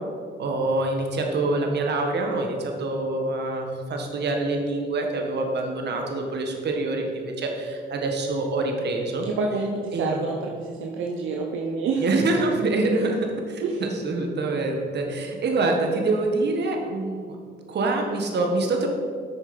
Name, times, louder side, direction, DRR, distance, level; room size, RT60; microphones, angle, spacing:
voice 1, 0.4-9.3 9.9-10.2 12.0-17.4 17.7-18.9, right 2 dB, 60° right, 2 dB, 1.7 m, -26 dB
voice 2, 9.2-12.2 13.6-13.8, right 4 dB, 80° right, 0 dB, 0.9 m, -27 dB
8.9 x 6.6 x 5.4 m, 2.1 s
cardioid pair, 90°, 20 cm